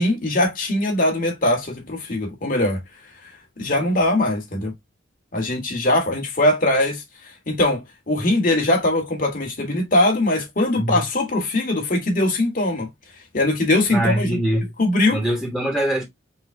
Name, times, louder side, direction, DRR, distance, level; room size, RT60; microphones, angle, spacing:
voice 1, 0.0-2.8 3.6-4.7 5.3-7.0 7.5-12.9 13.3-14.4 14.8-15.2, left 1 dB, 45° left, 1.7 m, -21 dB
voice 2, 13.9-14.7 15.1-16.0, right 1 dB, 5° left, 1.1 m, -23 dB
5.4 x 2.3 x 3.4 m
head